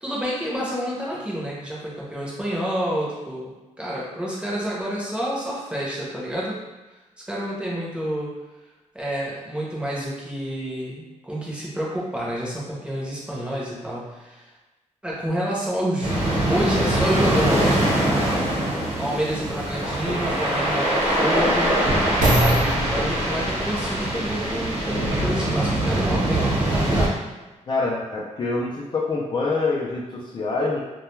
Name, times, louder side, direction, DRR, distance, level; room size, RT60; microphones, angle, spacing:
voice 1, 0.0-3.5 3.8-6.6 7.3-8.3 8.9-14.5 15.0-16.1 16.5-17.8 19.0-26.5, equal, 10° right, -6 dB, 0.7 m, -28 dB
sound 1, 16.0-27.1, right 1 dB, 50° right, 0.9 m, -23 dB
sound 2, 20.9-25.3 26.0-26.1, right 1 dB, 90° right, 0.6 m, -27 dB
voice 2, 27.7-30.8, left 3 dB, 35° left, -4 dB, 0.4 m, -25 dB
2.2 x 2.2 x 3.0 m, 1.1 s
cardioid pair, 110°, 13 cm